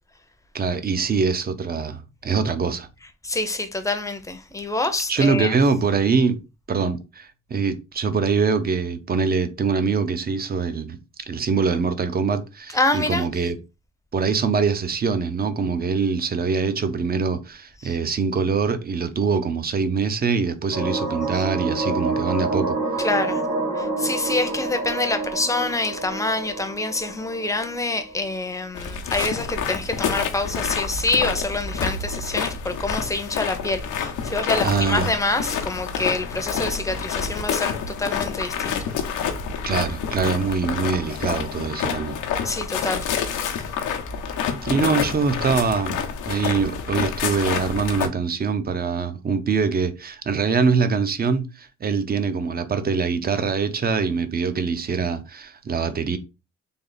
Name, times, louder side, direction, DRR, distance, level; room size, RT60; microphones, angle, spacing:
voice 1, 0.5-2.9 5.1-6.4 6.7-11.0 11.3-13.6 14.1-22.8 34.6-35.1 39.6-42.2 44.6-56.2, right 5 dB, 30° right, 0.6 m, -23 dB
voice 2, 3.2-5.5 12.7-13.3 17.8-17.9 23.0-23.4 23.8-38.8 42.4-43.1, left 2 dB, 10° left, 0.7 m, -26 dB
sound 1, 20.7-28.3, right 3 dB, 65° right, 1.7 m, -28 dB
sound 2, 28.7-48.1, left 7 dB, 85° left, 0.8 m, -28 dB
3.5 x 2.3 x 3.9 m
cardioid pair, 90°, 30 cm